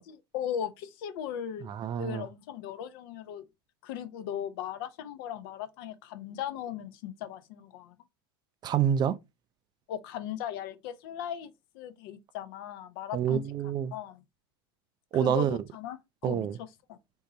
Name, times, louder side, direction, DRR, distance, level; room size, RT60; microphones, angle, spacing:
voice 1, 0.1-1.7 2.0-3.4 3.8-7.9 9.9-13.4 13.9-14.2 15.1-16.5 16.9-17.0, left 9 dB, 65° left, 0.7 m, -37 dB
voice 2, 1.7-2.3 8.6-9.2 13.1-13.9 15.1-15.6 16.2-16.6, right 9 dB, 35° right, 0.4 m, -27 dB
3.6 x 2.7 x 4.2 m
hypercardioid pair, 105°, 13 cm